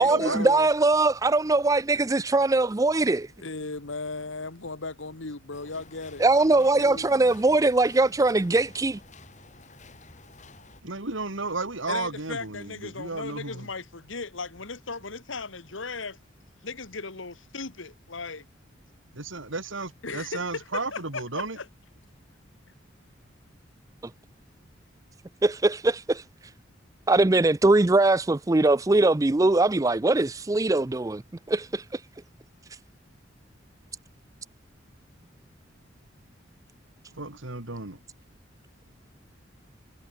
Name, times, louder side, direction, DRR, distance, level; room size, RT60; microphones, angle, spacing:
voice 1, 0.5-3.3 6.2-9.0 25.4-26.2 27.1-31.2 31.5-32.0, right 2 dB, 15° right, 0.4 m, -21 dB
voice 2, 3.4-7.1 11.9-16.2 16.6-18.5 20.0-21.7, left 3 dB, 90° left, 1.9 m, -37 dB
sound 1, 5.5-10.8, left 3 dB, 40° left, 3.8 m, -51 dB
voice 3, 10.8-13.7 19.1-21.6 37.2-38.0, right 3 dB, 90° right, 2.9 m, -33 dB
head